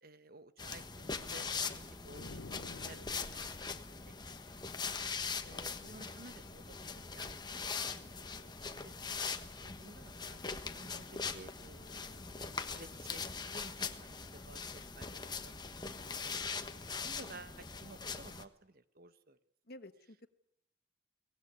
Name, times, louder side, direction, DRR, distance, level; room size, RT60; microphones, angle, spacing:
voice 1, 0.0-2.4 2.7-8.9 9.4-16.3 16.7-19.4, right 2 dB, 55° right, 12 dB, 1.2 m, -56 dB
sound 1, 0.6-18.4, left 5 dB, 25° left, 1.2 m, -41 dB
sound 2, 2.0-3.6, left 2 dB, 90° left, 1.0 m, -50 dB
voice 2, 5.2-5.6 19.7-20.3, left 1 dB, 55° left, 9 dB, 1.5 m, -53 dB
23.5 x 19.0 x 9.7 m, 0.79 s
head